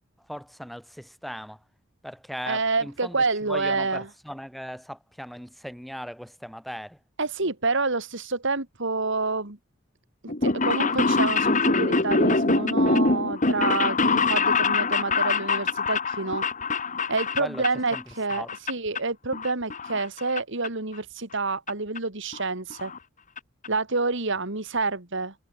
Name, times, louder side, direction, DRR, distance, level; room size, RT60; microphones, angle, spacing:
voice 1, 0.3-1.6 2.0-7.0 17.4-17.7 17.9-18.0 18.3-18.5, equal, ahead, 1.8 m, -38 dB
voice 2, 2.5-4.1 7.2-9.6 10.2-16.4 17.1-22.9 23.7-25.3, right 3 dB, 65° right, 3.0 m, -28 dB
sound 1, 10.3-18.0 18.3-19.0 19.3-20.4 20.6-20.7 21.7-21.8 22.0-22.1 22.3-22.4 22.7-23.0 23.4-23.5 23.6-23.7, left 3 dB, 40° left, 2.2 m, -24 dB
head